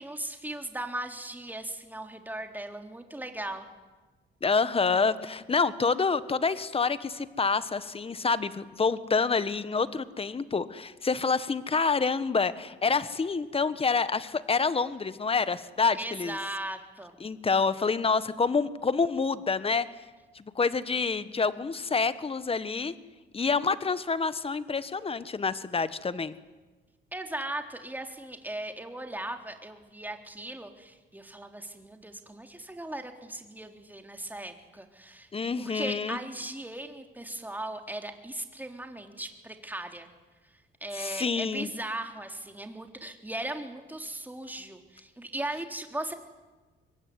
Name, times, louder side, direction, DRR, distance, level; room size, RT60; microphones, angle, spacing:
voice 1, 0.0-3.7 15.9-17.1 27.1-35.3 35.6-40.1 40.8-46.1, right 1 dB, 10° right, 5 dB, 3.7 m, -38 dB
voice 2, 4.4-16.4 17.2-19.9 20.3-22.9 23.3-26.3 35.3-36.2 40.9-41.7, left 4 dB, 30° left, 14 dB, 1.5 m, -27 dB
24.5 x 23.0 x 9.8 m, 1.2 s
cardioid pair, 90°, 20 cm